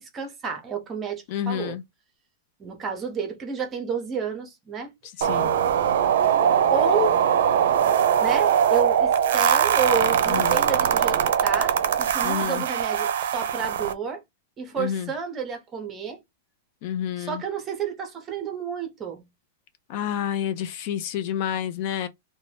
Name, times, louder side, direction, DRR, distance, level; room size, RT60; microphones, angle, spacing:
voice 1, 0.0-1.8 2.6-4.9 6.7-7.2 8.2-14.2 14.6-16.2 17.2-19.2, right 5 dB, 15° right, 0.6 m, -30 dB
voice 2, 1.3-1.8 5.2-5.5 10.3-10.6 12.2-12.6 14.8-15.1 16.8-17.4 19.9-22.1, left 9 dB, 40° left, 0.3 m, -29 dB
sound 1, 5.2-13.9, right 9 dB, 65° right, 0.5 m, -21 dB
2.6 x 2.1 x 3.2 m
supercardioid pair, 170°, 0 cm